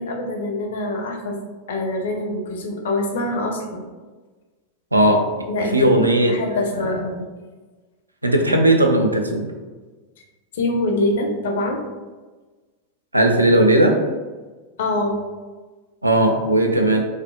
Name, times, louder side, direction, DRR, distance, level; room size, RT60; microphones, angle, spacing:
voice 1, 0.0-1.4 1.7-3.9 5.5-5.9 6.3-7.2 10.5-11.8 14.8-15.2, left 2 dB, 60° left, 3 dB, 0.4 m, -24 dB
voice 2, 4.9-5.2 5.7-6.3 6.8-7.0 8.2-9.5 13.1-14.0 16.0-17.0, right 1 dB, 85° right, 3 dB, 0.3 m, -17 dB
2.5 x 2.3 x 2.6 m, 1.3 s
figure-of-eight pair, 90°, 0 cm